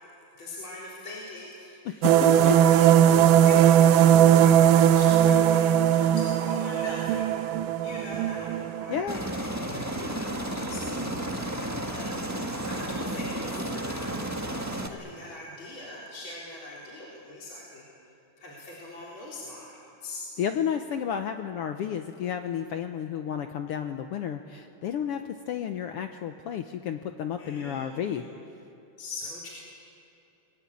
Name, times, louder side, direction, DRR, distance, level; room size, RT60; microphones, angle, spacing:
voice 1, 0.4-2.9 3.3-7.3 7.8-17.9 18.4-20.2 27.4-28.3 29.0-29.5, left 2 dB, 40° left, -5 dB, 4.5 m, -42 dB
voice 2, 1.8-2.5 8.9-9.2 20.4-28.2, left 8 dB, 85° left, 7 dB, 1.3 m, -32 dB
sound 1, 2.0-9.0, right 10 dB, 80° right, 2.2 m, -19 dB
Aircraft, 9.1-14.9, right 1 dB, 25° right, 0.3 m, -32 dB
29.0 x 21.5 x 8.6 m, 2.9 s
omnidirectional pair, 3.7 m